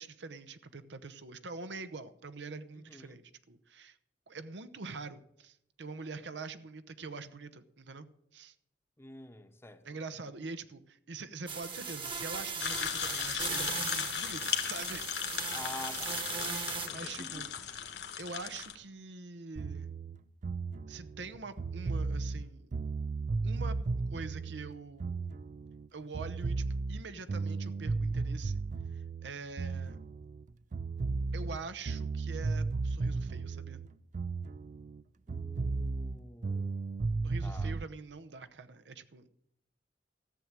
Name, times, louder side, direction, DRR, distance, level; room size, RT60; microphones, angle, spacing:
voice 1, 0.0-4.0 4.3-8.1 8.3-8.5 9.8-15.1 16.9-17.5 18.2-19.9 20.9-22.7 23.4-23.8 24.1-25.3 25.9-28.6 28.9-30.0 31.3-33.8 37.2-39.3, right 4 dB, 80° right, 0.8 m, -44 dB
voice 2, 2.7-3.2 9.0-10.0 15.5-17.4 35.3-36.9 37.4-37.8, left 2 dB, 15° left, 0.9 m, -48 dB
sound 1, 11.5-16.9, right 5 dB, 30° right, 1.2 m, -38 dB
sound 2, 12.6-18.7, left 8 dB, 65° left, 1.6 m, -37 dB
sound 3, 19.6-25.9 26.1-30.4 30.7-35.0 35.3-37.8, right 3 dB, 45° right, 0.4 m, -35 dB
14.0 x 7.2 x 8.8 m
head